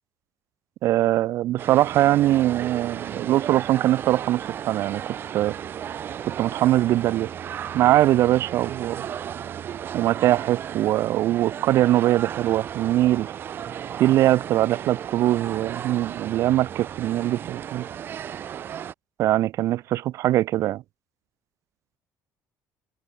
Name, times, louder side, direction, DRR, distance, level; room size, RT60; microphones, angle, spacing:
voice 1, 0.8-5.6 6.3-7.3 7.7-9.1 9.9-13.3 14.0-17.9 19.2-20.8, right 14 dB, 55° right, 0.9 m, -22 dB
sound 1, 1.6-18.9, right 9 dB, 35° right, 1.5 m, -35 dB
cardioid pair, 175°, 6 cm